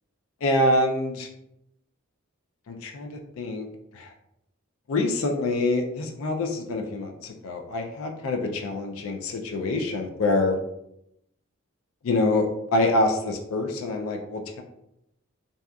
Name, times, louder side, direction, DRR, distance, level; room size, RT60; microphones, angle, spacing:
voice 1, 0.4-1.3 2.7-3.7 3.9-4.1 4.9-10.6 12.0-14.6, left 2 dB, 80° left, 3 dB, 0.4 m, -26 dB
2.7 x 2.3 x 2.3 m, 0.81 s
head